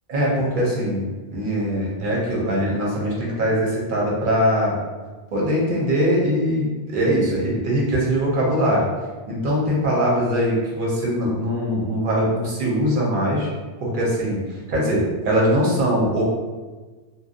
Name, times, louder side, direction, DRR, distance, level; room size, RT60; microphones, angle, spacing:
voice 1, 0.1-4.8 5.3-8.9 9.3-13.5 13.8-14.4 14.7-16.2, equal, 55° right, -4 dB, 0.9 m, -21 dB
2.6 x 2.1 x 2.5 m, 1.3 s
omnidirectional pair, 1.1 m